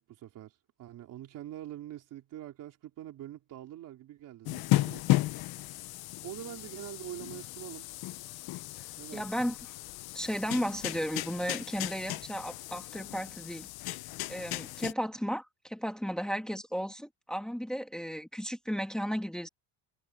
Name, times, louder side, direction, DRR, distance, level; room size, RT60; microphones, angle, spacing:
voice 1, 0.0-5.3 6.2-7.9 9.0-9.5, right 13 dB, 50° right, 3.5 m, -45 dB
sound 1, 4.5-14.9, left 18 dB, 65° left, 0.8 m, -35 dB
voice 2, 9.1-9.5 10.1-13.7 14.3-19.5, equal, ahead, 1.5 m, -34 dB
cardioid pair, 175°, 41 cm